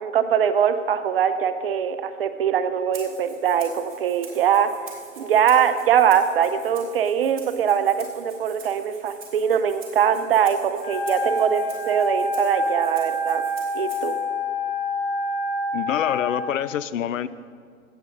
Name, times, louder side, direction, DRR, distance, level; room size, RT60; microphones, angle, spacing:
voice 1, 0.0-4.7 5.2-13.4 13.7-14.2, right 8 dB, 45° right, 11 dB, 0.7 m, -22 dB
Rattle (instrument), 2.9-14.2, right 4 dB, 60° right, 3.7 m, -46 dB
Wind instrument woodwind instrument, 10.7-16.3, left 1 dB, 15° left, 2.0 m, -27 dB
voice 2, 15.7-17.3, left 10 dB, 70° left, 17 dB, 0.6 m, -26 dB
17.5 x 8.7 x 3.9 m, 2.1 s
hypercardioid pair, 145°, 40 cm